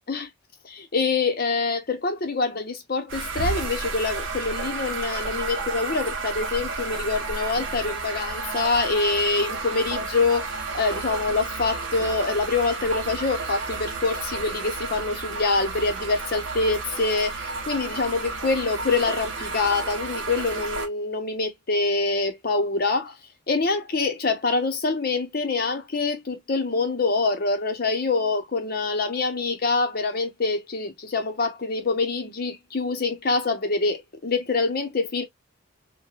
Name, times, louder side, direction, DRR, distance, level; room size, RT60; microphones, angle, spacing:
voice 1, 0.6-10.5 10.7-23.2 23.5-35.2, left 3 dB, 45° left, 0.7 m, -25 dB
sound 1, 3.1-20.9, right 4 dB, 60° right, 0.7 m, -32 dB
3.0 x 2.2 x 2.3 m
head